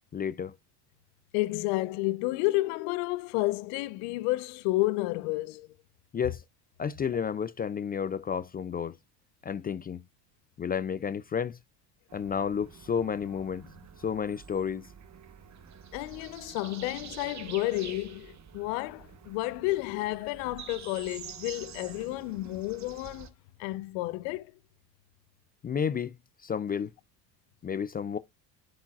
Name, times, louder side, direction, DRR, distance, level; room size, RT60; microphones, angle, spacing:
voice 1, 0.1-0.6 6.1-6.4 6.8-9.0 9.4-10.0 10.6-11.6 12.1-13.7 14.0-14.9 25.6-26.1 26.4-26.9 27.6-28.2, left 7 dB, 20° left, 0.3 m, -31 dB
voice 2, 1.3-5.7 15.9-23.3 23.6-24.5, left 19 dB, 70° left, 0.8 m, -31 dB
sound 1, 12.1-23.3, right 7 dB, 35° right, 1.2 m, -47 dB
10.5 x 4.7 x 2.4 m
hypercardioid pair, 75°, 49 cm